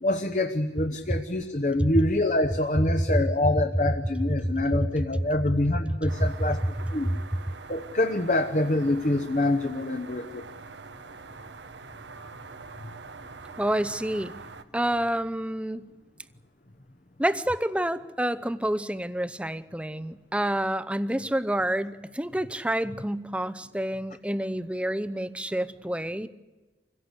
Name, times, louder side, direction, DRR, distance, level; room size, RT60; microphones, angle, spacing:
voice 1, 0.0-6.6 6.9-7.1 7.7-10.5, left 1 dB, 45° left, 6 dB, 1.0 m, -26 dB
sound 1, 6.1-14.6, right 4 dB, 90° right, 1.2 m, -44 dB
voice 2, 13.6-14.3 14.7-15.9 17.2-26.3, right 1 dB, 5° right, 13 dB, 0.7 m, -28 dB
26.0 x 16.5 x 8.2 m, 1.3 s
head